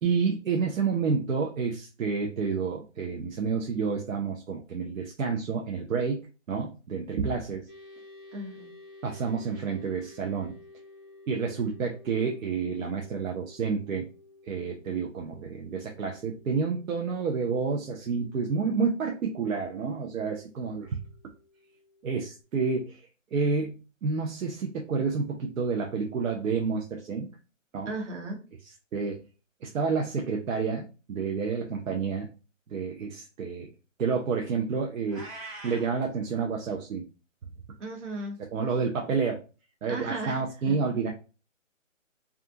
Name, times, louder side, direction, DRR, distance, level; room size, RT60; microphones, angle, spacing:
voice 1, 0.0-7.7 9.0-10.6 11.3-14.1 14.4-21.0 22.0-27.3 27.7-27.9 28.9-29.2 29.6-32.3 32.7-33.7 34.0-35.3 35.6-37.1 38.5-39.4 39.8-41.1, right 5 dB, 85° right, 1 dB, 0.6 m, -29 dB
sound 1, 7.7-22.4, left 2 dB, 15° left, 0.5 m, -53 dB
voice 2, 8.3-8.7 27.9-28.4 37.8-38.4 39.9-40.7, right 2 dB, 65° right, 3 dB, 1.1 m, -36 dB
Meow, 35.1-35.9, right 2 dB, 25° right, 1.0 m, -42 dB
2.4 x 2.3 x 2.6 m, 0.33 s
hypercardioid pair, 165°, 39 cm